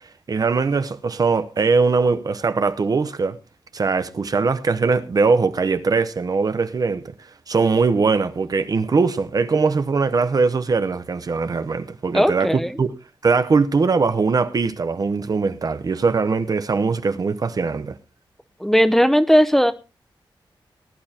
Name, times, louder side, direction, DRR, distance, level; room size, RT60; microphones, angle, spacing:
voice 1, 0.3-3.4 3.7-7.1 7.5-12.9 13.2-18.0, right 4 dB, 45° right, 0.8 m, -21 dB
voice 2, 12.1-12.7 18.6-19.7, equal, 5° left, 0.7 m, -17 dB
19.5 x 11.0 x 2.8 m
wide cardioid pair, 165°, 9 cm